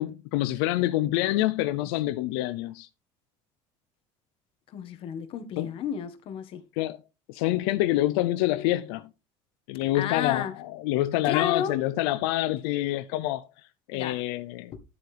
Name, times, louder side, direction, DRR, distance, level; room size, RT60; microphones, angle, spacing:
voice 1, 0.0-2.9 5.6-5.7 6.8-7.0 7.3-9.1 9.7-13.4 13.9-14.7, left 15 dB, 90° left, 0.6 m, -26 dB
voice 2, 4.7-6.6 9.9-10.5 11.2-11.8 13.9-14.2, left 9 dB, 50° left, 1.5 m, -32 dB
11.0 x 7.9 x 3.4 m
cardioid pair, 140°, 12 cm